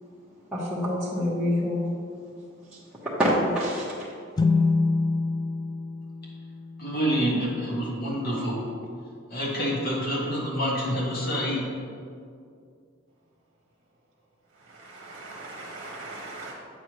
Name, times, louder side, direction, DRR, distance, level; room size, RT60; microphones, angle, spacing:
voice 1, 0.5-1.9 3.2-3.8, equal, 5° right, -11 dB, 1.1 m, -25 dB
sound 1, 4.4-7.9, left 3 dB, 20° left, 0.3 m, -27 dB
voice 2, 6.8-8.6 9.3-11.6, equal, 50° left, -4 dB, 1.9 m, -27 dB
voice 3, 14.7-16.5, right 2 dB, 55° right, -2 dB, 1.0 m, -40 dB
8.2 x 6.5 x 3.2 m, 2.3 s
head